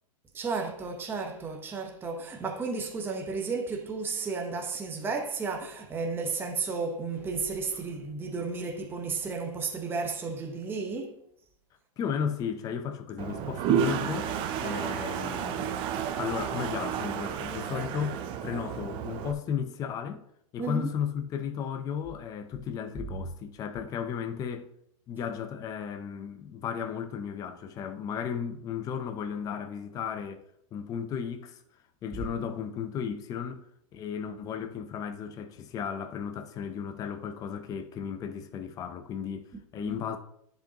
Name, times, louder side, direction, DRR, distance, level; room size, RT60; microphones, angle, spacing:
voice 1, 0.3-11.1 20.6-20.9 32.1-32.2 39.8-40.0, right 4 dB, 10° right, 0.8 m, -33 dB
voice 2, 12.0-15.8 16.2-20.2 20.5-24.7 25.1-30.4 30.7-31.6 32.0-33.7 33.9-40.2, left 7 dB, 20° left, 0.6 m, -34 dB
Toilet flush, 13.2-19.3, right 8 dB, 30° right, 0.5 m, -31 dB
10.0 x 5.2 x 2.9 m
hypercardioid pair, 135°, 18 cm